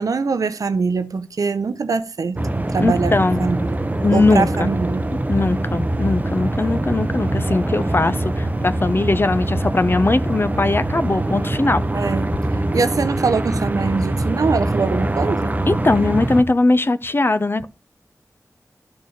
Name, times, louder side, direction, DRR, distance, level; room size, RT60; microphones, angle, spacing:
voice 1, 0.0-2.4 2.7-3.1 3.4-3.8 4.1-5.1 11.9-12.3 12.7-15.6, right 4 dB, 85° right, 0.6 m, -22 dB
sound 1, 2.4-16.4, right 1 dB, 25° right, 0.7 m, -23 dB
voice 2, 2.8-3.5 4.0-4.7 5.3-11.8 15.7-17.7, left 2 dB, 40° left, 0.7 m, -19 dB
11.5 x 4.1 x 4.9 m
wide cardioid pair, 55°, 6 cm